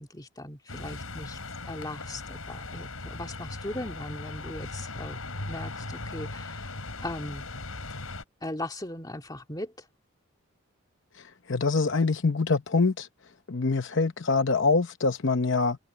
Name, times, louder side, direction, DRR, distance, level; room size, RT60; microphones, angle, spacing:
voice 1, 0.0-1.4 1.6-5.2 5.4-6.7 7.0-7.5 8.4-9.9, left 1 dB, 20° left, 2.3 m, -38 dB
sound 1, 0.7-8.2, left 2 dB, 85° left, 5.1 m, -38 dB
voice 2, 11.2-13.1 13.5-15.8, left 4 dB, 60° left, 0.8 m, -25 dB
head